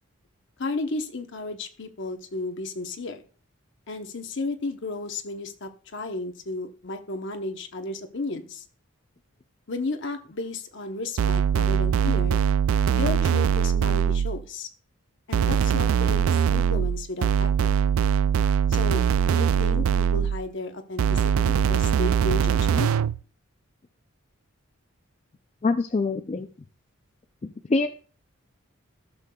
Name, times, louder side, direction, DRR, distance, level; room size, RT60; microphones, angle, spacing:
voice 1, 0.6-3.2 3.9-8.6 9.7-12.4 12.9-14.7 15.3-16.2 16.5-17.7 18.7-19.8 20.1-22.9, left 2 dB, 55° left, 6 dB, 0.9 m, -33 dB
sound 1, 11.2-14.4 15.3-20.5 21.0-23.2, right 7 dB, 75° right, 0.3 m, -22 dB
voice 2, 25.6-26.5 27.4-27.9, left 3 dB, 30° left, 6 dB, 0.4 m, -25 dB
15.0 x 6.6 x 2.3 m, 0.40 s
head